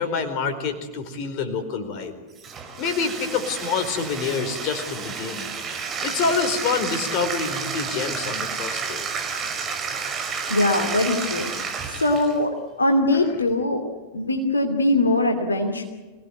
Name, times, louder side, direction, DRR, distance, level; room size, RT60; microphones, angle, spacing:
voice 1, 0.0-2.1 2.8-5.5 6.0-9.0, left 5 dB, 40° left, 7 dB, 4.4 m, -27 dB
Bathtub (filling or washing), 2.4-12.4, right 5 dB, 25° right, 5.4 m, -31 dB
voice 2, 10.5-11.5 12.0-13.9 14.1-15.8, left 1 dB, 75° left, 3 dB, 2.8 m, -21 dB
26.0 x 18.5 x 9.4 m, 1.2 s
figure-of-eight pair, 90°, 0 cm